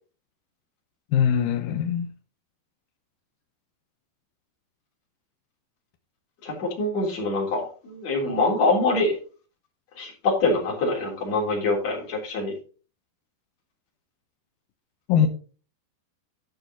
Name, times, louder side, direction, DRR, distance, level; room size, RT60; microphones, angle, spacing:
voice 1, 1.1-2.1 15.1-15.3, left 8 dB, 80° left, 2.0 m, -21 dB
voice 2, 6.4-9.2 10.0-12.5, left 2 dB, 40° left, 4.2 m, -24 dB
11.5 x 6.6 x 4.1 m
omnidirectional pair, 5.2 m